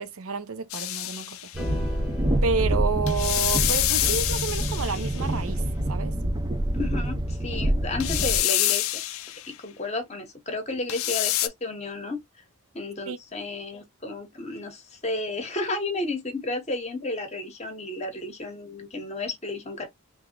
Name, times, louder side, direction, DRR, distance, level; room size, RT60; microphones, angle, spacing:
voice 1, 0.0-1.4 2.4-6.1 13.1-13.2, right 5 dB, 70° right, 0.5 m, -30 dB
sound 1, 0.7-1.6 3.1-5.3 8.0-9.5 10.9-11.5, left 14 dB, 70° left, 0.4 m, -27 dB
Train, 1.5-8.4, right 1 dB, 20° right, 0.4 m, -26 dB
sound 2, 1.6-3.9, left 3 dB, ahead, 0.9 m, -41 dB
voice 2, 6.7-8.9 9.5-12.2 12.7-19.9, left 2 dB, 30° left, 0.8 m, -32 dB
3.1 x 2.0 x 3.7 m
head